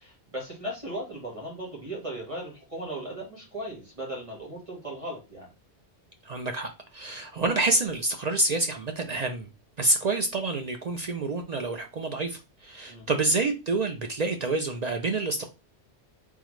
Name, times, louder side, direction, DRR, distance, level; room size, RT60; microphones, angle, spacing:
voice 1, 0.0-5.5 12.9-13.2, right 1 dB, 30° right, -4 dB, 1.5 m, -37 dB
voice 2, 6.2-9.5 9.8-15.5, right 2 dB, 55° right, 5 dB, 0.5 m, -28 dB
3.7 x 3.5 x 3.1 m, 0.28 s
omnidirectional pair, 1.1 m